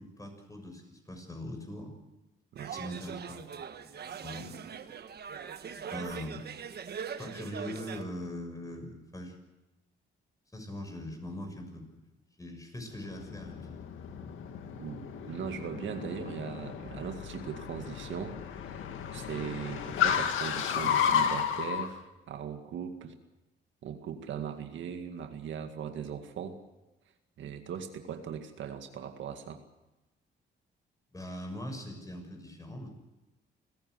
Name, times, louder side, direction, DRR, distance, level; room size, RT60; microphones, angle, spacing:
voice 1, 0.0-1.9 2.7-4.6 5.7-6.5 7.2-9.3 10.5-11.9 12.4-14.0 31.1-32.9, left 1 dB, 15° left, 4 dB, 6.7 m, -42 dB
crowd int small group young people kitchen party, 2.6-8.0, right 7 dB, 55° right, 1.4 m, -41 dB
Car, 12.9-21.9, left 8 dB, 80° left, 2.2 m, -33 dB
voice 2, 14.8-18.4 18.7-18.8 19.1-23.2 23.8-26.6 27.4-29.6, right 8 dB, 70° right, 6 dB, 2.1 m, -39 dB
27.0 x 15.5 x 8.0 m, 1.0 s
cardioid pair, 90°, 20 cm